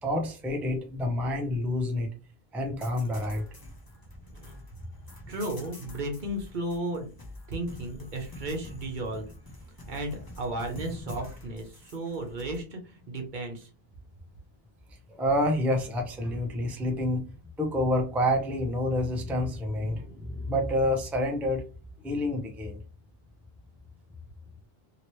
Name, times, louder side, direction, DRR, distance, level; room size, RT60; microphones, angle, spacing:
voice 1, 0.0-2.1 2.5-3.5 15.1-17.3 17.6-21.6 22.0-22.8, left 1 dB, ahead, 2 dB, 0.5 m, -28 dB
sound 1, 2.8-12.6, left 1 dB, 25° left, 0.7 m, -46 dB
voice 2, 4.3-4.6 5.3-7.1 7.5-9.2 9.9-13.7, right 1 dB, 55° right, 3 dB, 0.8 m, -34 dB
2.9 x 2.9 x 3.0 m, 0.36 s
omnidirectional pair, 1.0 m